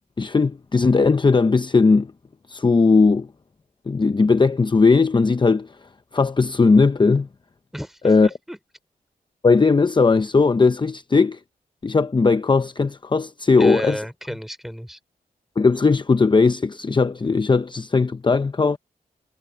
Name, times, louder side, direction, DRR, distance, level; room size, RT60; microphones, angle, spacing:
voice 1, 0.2-2.1 2.5-3.3 3.9-5.7 6.1-7.3 8.0-8.3 9.4-11.4 11.8-14.0 15.6-18.8, left 4 dB, 30° left, 0.7 m, -18 dB
voice 2, 8.2-8.6 13.5-15.0, equal, ahead, 3.2 m, -30 dB
wide cardioid pair, 85°, 16 cm